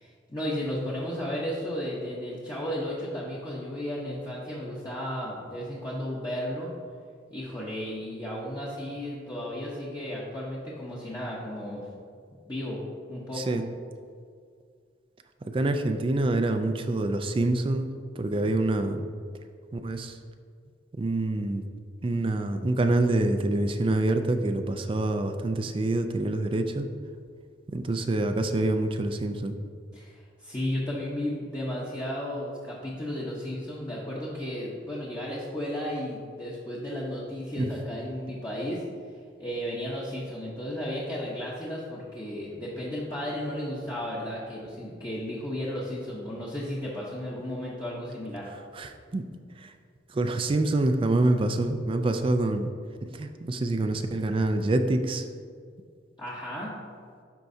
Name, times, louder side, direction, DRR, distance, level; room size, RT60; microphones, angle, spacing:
voice 1, 0.0-6.7 7.3-11.8 12.4-12.8 13.1-13.6 29.9-38.8 39.4-48.5 56.2-56.7, left 1 dB, 25° left, -7 dB, 0.9 m, -34 dB
voice 2, 13.3-13.6 15.4-17.9 18.2-19.0 19.7-20.2 21.0-21.6 22.0-26.9 27.7-29.6 37.6-37.7 48.7-49.2 49.6-49.7 50.1-52.7 53.0-55.3, right 2 dB, 30° right, 7 dB, 0.3 m, -26 dB
11.5 x 4.5 x 2.7 m, 2.1 s
head